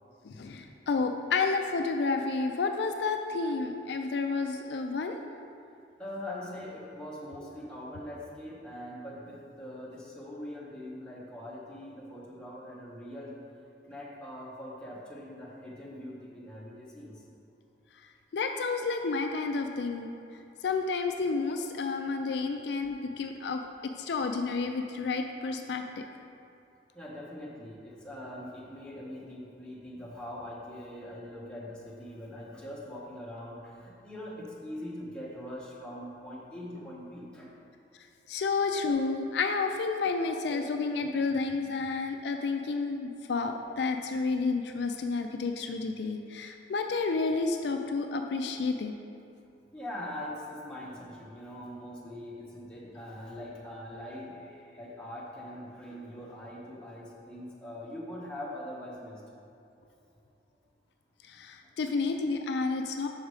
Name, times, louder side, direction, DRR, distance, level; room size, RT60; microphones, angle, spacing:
voice 1, 0.2-5.2 18.3-20.1 20.6-23.6 24.0-25.8 38.3-48.9 61.2-63.1, left 4 dB, 70° left, 5 dB, 0.4 m, -30 dB
voice 2, 6.0-13.3 13.9-17.2 26.9-37.5 48.4-48.5 49.7-59.2, left 1 dB, 5° left, -6 dB, 1.2 m, -42 dB
6.4 x 5.0 x 4.8 m, 2.7 s
head